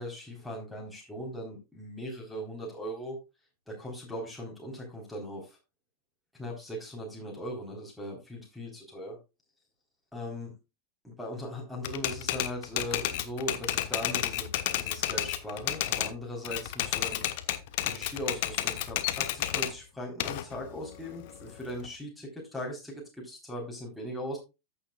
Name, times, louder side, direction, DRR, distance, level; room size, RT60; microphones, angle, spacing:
voice 1, 0.0-3.2 3.7-5.6 6.3-9.2 10.1-10.5 11.0-17.3 17.8-24.4, equal, ahead, -3 dB, 3.9 m, -39 dB
Typewriter, 11.8-16.1 16.4-19.7 20.2-21.9, left 14 dB, 50° left, 1.1 m, -31 dB
14.5 x 6.9 x 2.3 m, 0.26 s
figure-of-eight pair, 90°, 0 cm